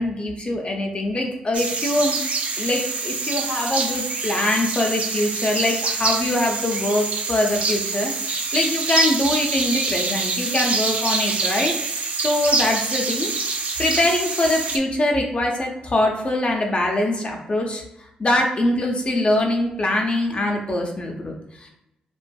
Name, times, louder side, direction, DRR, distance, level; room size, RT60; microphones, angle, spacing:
voice 1, 0.0-2.2 2.6-11.7 12.2-13.3 13.8-21.7, left 1 dB, 35° left, 1 dB, 0.7 m, -23 dB
sound 1, 1.5-14.8, right 3 dB, 45° right, 0.5 m, -25 dB
2.5 x 2.4 x 2.3 m, 0.85 s
supercardioid pair, 50°, 3 cm